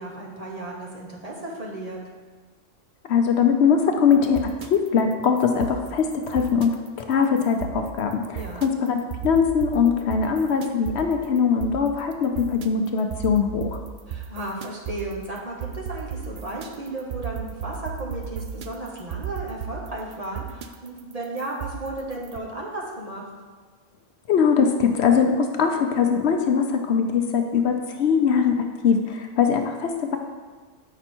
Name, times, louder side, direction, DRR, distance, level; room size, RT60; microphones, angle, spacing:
voice 1, 0.0-2.0 8.3-8.7 14.1-23.2, right 2 dB, 35° right, -3 dB, 1.1 m, -34 dB
voice 2, 3.0-9.0 9.2-13.8 24.3-30.2, left 6 dB, 65° left, 5 dB, 0.9 m, -21 dB
sound 1, 4.1-22.4, right 8 dB, 60° right, 0.6 m, -36 dB
7.9 x 5.2 x 4.4 m, 1.4 s
omnidirectional pair, 1.2 m